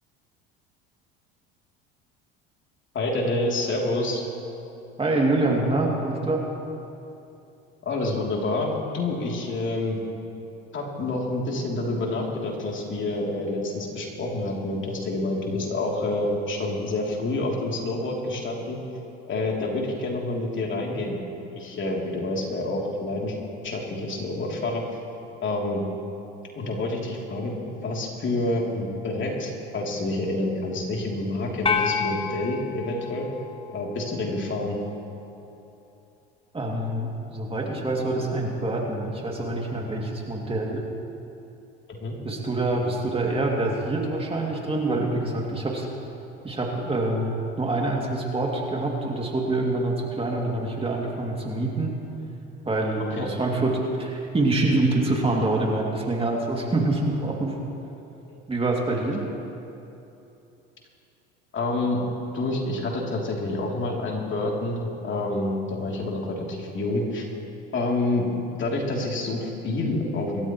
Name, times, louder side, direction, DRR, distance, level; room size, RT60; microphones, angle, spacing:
voice 1, 2.9-4.2 7.8-10.0 10.7-18.8 19.3-21.2 21.5-23.4 23.6-24.8 25.4-25.8 26.5-33.3 33.7-34.8 41.9-42.2 53.1-53.3 58.2-58.4 61.5-62.0 62.3-67.2 67.7-68.3 68.6-70.5, left 2 dB, 40° left, -1 dB, 3.1 m, -28 dB
voice 2, 5.0-6.4 36.5-40.8 42.2-45.9 46.4-51.9 52.7-57.5 58.5-59.3, right 2 dB, 20° right, -1 dB, 2.5 m, -26 dB
sound 1, 31.7-34.1, left 6 dB, 20° left, 1.2 m, -29 dB
26.5 x 13.5 x 3.1 m, 2.8 s
hypercardioid pair, 75°, 30 cm